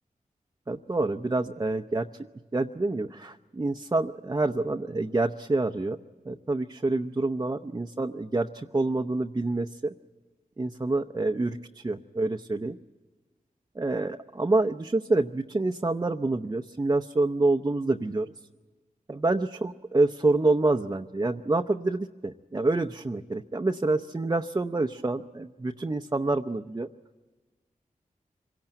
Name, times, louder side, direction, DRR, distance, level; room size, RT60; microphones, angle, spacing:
voice 1, 0.7-2.1 2.5-6.0 6.3-9.9 10.6-12.8 13.8-18.3 19.1-26.9, right 2 dB, 25° right, 4 dB, 0.7 m, -27 dB
25.5 x 17.5 x 9.1 m, 1.3 s
wide cardioid pair, 70°, 15 cm